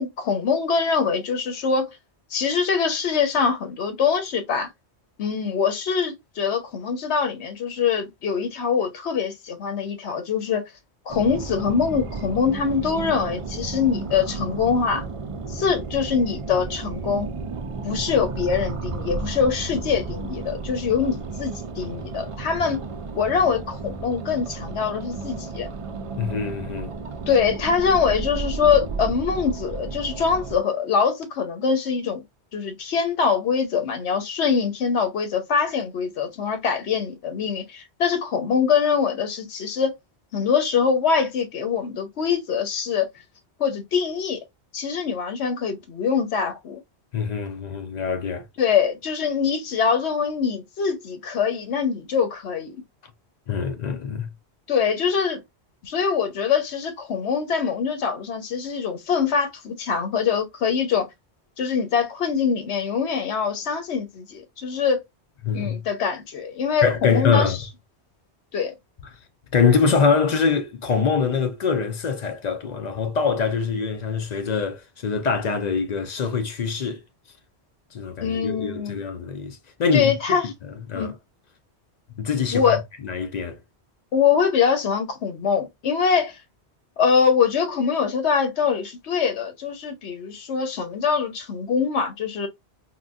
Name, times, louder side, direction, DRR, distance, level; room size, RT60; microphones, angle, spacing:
voice 1, 0.0-2.0 2.3-4.7 5.2-10.6 11.1-15.0 15.5-17.3 17.8-22.8 23.1-25.7 27.3-32.2 32.5-39.9 40.3-43.1 43.6-44.4 44.7-46.8 48.6-52.8 54.7-55.4 55.8-61.1 61.6-65.0 65.5-67.6 68.5-68.7 78.2-79.0 79.9-80.5 80.9-81.1 82.5-82.8 84.1-86.4 87.0-92.5, left 6 dB, 80° left, 1.0 m, -23 dB
sound 1, 11.1-30.6, right 4 dB, 60° right, 0.3 m, -33 dB
voice 2, 26.2-26.9 47.1-48.4 53.5-54.3 65.4-65.8 66.8-67.6 69.5-77.0 77.9-80.1 80.4-80.5 80.9-81.1 82.2-82.8 83.0-83.6, left 5 dB, 55° left, 0.5 m, -24 dB
3.8 x 2.2 x 2.3 m
omnidirectional pair, 1.1 m